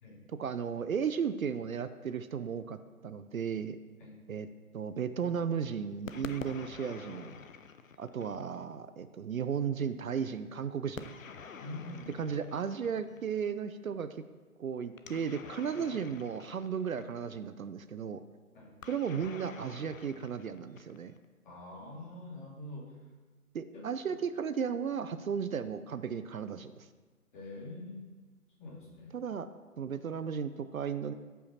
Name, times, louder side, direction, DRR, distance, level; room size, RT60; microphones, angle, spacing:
voice 1, 0.4-3.8 4.3-4.5 4.7-7.3 8.0-11.1 12.2-14.1 14.6-18.2 18.9-21.1 23.5-26.9 29.1-29.5 29.8-31.1, right 7 dB, 65° right, 12 dB, 0.6 m, -35 dB
sound 1, 6.1-8.7 11.0-13.3 15.0-17.4 18.8-21.3, left 6 dB, 60° left, 0.8 m, -47 dB
voice 2, 11.6-12.3 18.5-18.7 21.4-22.9 23.7-23.9 27.3-28.1 28.6-29.2, left 2 dB, 35° left, -4 dB, 2.9 m, -45 dB
13.5 x 5.6 x 4.3 m, 1.4 s
figure-of-eight pair, 150°, 46 cm